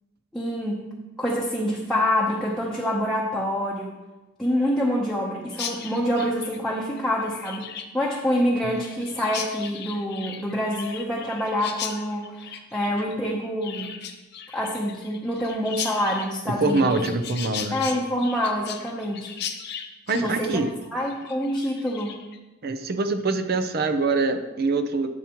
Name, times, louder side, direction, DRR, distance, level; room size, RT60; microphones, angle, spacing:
voice 1, 0.3-0.9 1.2-3.9 4.4-13.9 14.5-17.0 17.7-19.3 20.1-20.6 20.9-22.2, equal, ahead, -4 dB, 0.8 m, -26 dB
Chirp tweet, 5.5-22.4, left 8 dB, 55° left, 0.8 m, -37 dB
voice 2, 16.5-17.8 20.1-20.7 22.6-25.1, right 3 dB, 50° right, 8 dB, 0.6 m, -24 dB
12.0 x 7.2 x 3.0 m, 1.1 s
head